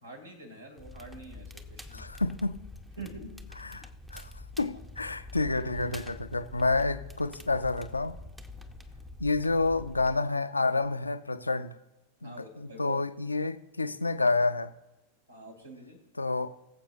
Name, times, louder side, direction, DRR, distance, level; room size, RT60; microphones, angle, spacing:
voice 1, 0.0-2.0 3.0-3.4 12.2-13.0 15.3-16.0, right 3 dB, 80° right, 1 dB, 2.6 m, -46 dB
Crackle, 0.8-10.2, left 2 dB, 5° right, 0.6 m, -46 dB
voice 2, 1.9-2.6 3.6-4.3 4.6-8.2 9.2-11.7 12.2-14.7 16.2-16.5, left 3 dB, 80° left, 12 dB, 0.5 m, -29 dB
21.0 x 7.5 x 2.6 m, 0.98 s
figure-of-eight pair, 90°, 0 cm